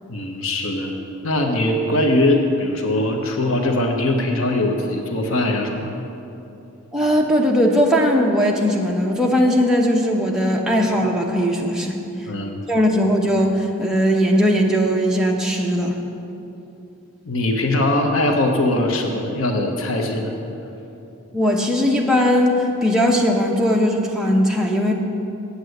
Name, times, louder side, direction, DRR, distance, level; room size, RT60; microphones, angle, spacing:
voice 1, 0.1-0.9 1.2-6.0 12.3-12.6 17.2-20.3, left 1 dB, 65° left, 2 dB, 1.0 m, -21 dB
voice 2, 6.9-11.9 12.7-16.0 21.3-24.9, equal, 5° right, -2 dB, 0.9 m, -19 dB
8.3 x 8.2 x 7.9 m, 2.9 s
head